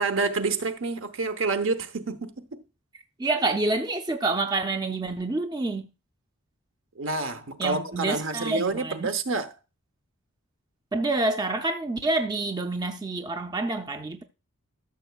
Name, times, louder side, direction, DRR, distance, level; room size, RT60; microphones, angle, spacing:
voice 1, 0.0-2.6 7.0-9.5, right 3 dB, 60° right, 0.9 m, -28 dB
voice 2, 3.2-5.9 7.6-9.1 10.9-14.2, right 2 dB, 20° right, 0.5 m, -27 dB
13.0 x 6.8 x 2.3 m
head